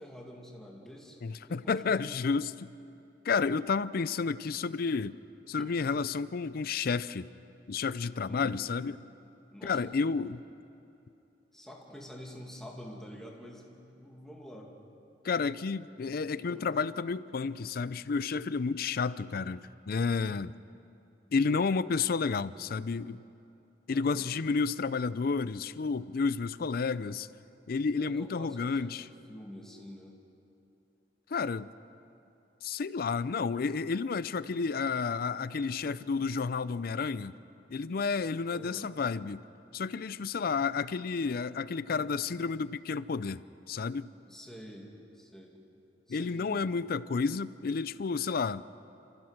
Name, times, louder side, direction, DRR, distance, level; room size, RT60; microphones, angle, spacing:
voice 1, 0.0-1.2 1.4-2.1 8.3-8.6 9.5-10.1 11.5-14.7 16.4-16.7 23.9-24.3 28.0-30.2 38.5-38.9 44.3-45.7 46.1-46.6, equal, 5° left, -2 dB, 2.4 m, -47 dB
voice 2, 1.2-2.7 3.2-5.2 5.5-7.3 7.7-9.0 9.6-10.4 15.2-20.5 21.3-23.2 23.9-27.3 27.7-29.1 31.3-31.7 32.6-37.3 37.7-39.4 39.7-43.4 43.7-44.1 46.1-48.6, left 5 dB, 55° left, 16 dB, 0.5 m, -31 dB
26.5 x 15.0 x 6.5 m, 2.8 s
head